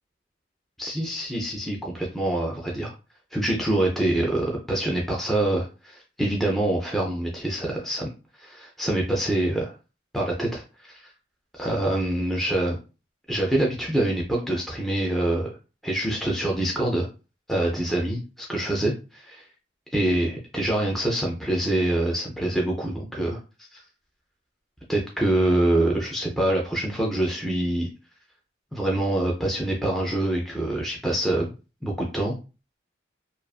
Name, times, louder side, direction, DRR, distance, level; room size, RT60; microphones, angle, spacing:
voice 1, 0.8-2.9 3.3-8.1 8.4-9.7 10.1-11.0 11.5-12.8 13.3-15.6 15.8-17.1 17.5-19.4 19.9-23.4 23.7-23.8 24.9-27.9 28.7-31.5 31.8-32.4, right 1 dB, ahead, -1 dB, 0.4 m, -25 dB
2.4 x 2.3 x 2.3 m, 0.32 s
head